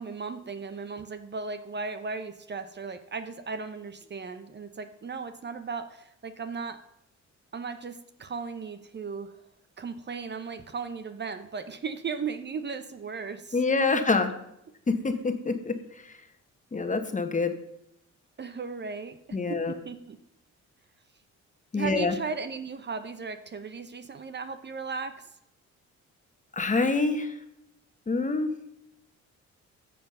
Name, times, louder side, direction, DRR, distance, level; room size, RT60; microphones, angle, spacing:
voice 1, 0.0-6.8 7.5-9.3 9.8-13.6 18.4-19.2 19.5-20.2 21.7-25.1, right 5 dB, 35° right, 10 dB, 0.9 m, -36 dB
voice 2, 13.5-14.3 14.9-15.7 16.7-17.5 19.3-19.7 21.7-22.1 26.6-27.3 28.1-28.5, left 3 dB, 25° left, 7 dB, 1.4 m, -26 dB
14.0 x 7.0 x 5.5 m, 0.80 s
cardioid pair, 90°, 30 cm